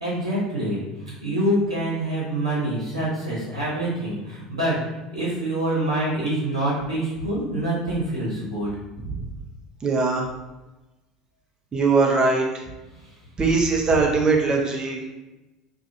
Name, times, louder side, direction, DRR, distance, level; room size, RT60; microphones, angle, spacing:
voice 1, 0.0-4.8 5.1-8.7, right 1 dB, 85° right, -7 dB, 0.8 m, -26 dB
voice 2, 9.8-10.2 11.7-12.5 13.4-15.0, right 4 dB, 25° right, -1 dB, 0.7 m, -21 dB
2.5 x 2.4 x 2.7 m, 1.0 s
figure-of-eight pair, 70°, 3 cm